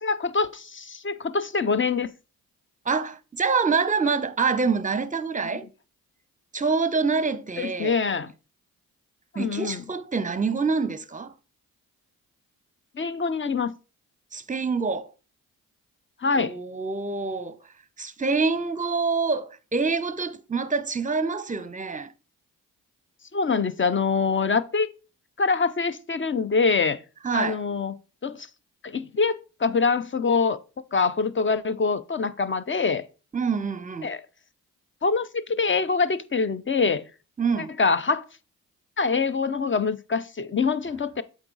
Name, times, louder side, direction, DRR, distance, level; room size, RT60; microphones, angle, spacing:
voice 1, 0.0-2.1 7.6-8.3 9.3-9.8 13.0-13.7 16.2-16.6 23.3-24.9 25.4-27.0 27.3-27.9 28.2-28.5 28.8-30.6 30.9-33.0 34.0-34.2 35.0-37.1 37.6-38.3 39.0-41.2, left 4 dB, 30° left, 0.6 m, -24 dB
voice 2, 2.9-5.7 6.5-7.9 9.4-11.3 14.3-15.1 16.4-17.6 18.0-22.1 27.2-27.6 33.3-34.1 37.4-37.7, right 4 dB, 20° right, 0.7 m, -26 dB
7.8 x 4.1 x 3.9 m
supercardioid pair, 50°, 39 cm